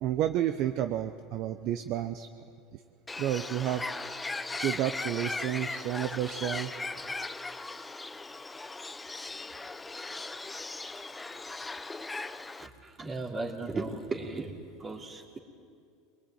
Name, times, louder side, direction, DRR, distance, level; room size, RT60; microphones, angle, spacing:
voice 1, 0.0-2.3 2.7-2.8 3.2-3.8 4.5-6.8, right 11 dB, 55° right, 8 dB, 0.9 m, -31 dB
Bird, 3.1-12.7, left 3 dB, 10° left, 0.7 m, -38 dB
voice 2, 12.6-14.5 14.8-15.4, right 3 dB, 25° right, 2 dB, 3.1 m, -36 dB
22.0 x 22.0 x 9.3 m, 2.3 s
supercardioid pair, 115°, 0 cm